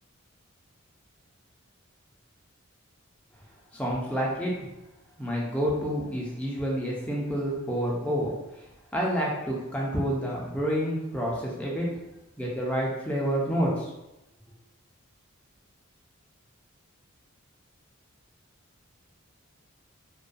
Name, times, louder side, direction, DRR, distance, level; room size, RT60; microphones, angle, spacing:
voice 1, 3.7-4.5 5.2-8.6 8.9-11.9 12.4-13.9, equal, 5° left, -4 dB, 0.4 m, -28 dB
2.3 x 2.2 x 2.5 m, 0.94 s
head